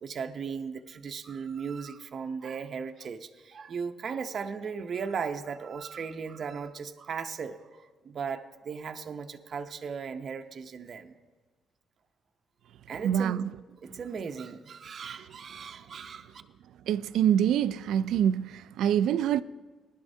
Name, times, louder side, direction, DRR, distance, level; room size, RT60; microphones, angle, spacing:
voice 1, 0.0-11.1 12.9-13.5 13.8-16.4, right 6 dB, 55° right, 0.7 m, -37 dB
voice 2, 13.0-13.4 16.9-19.4, right 9 dB, 80° right, 0.3 m, -25 dB
19.0 x 11.0 x 2.7 m
cardioid pair, 90°, 0 cm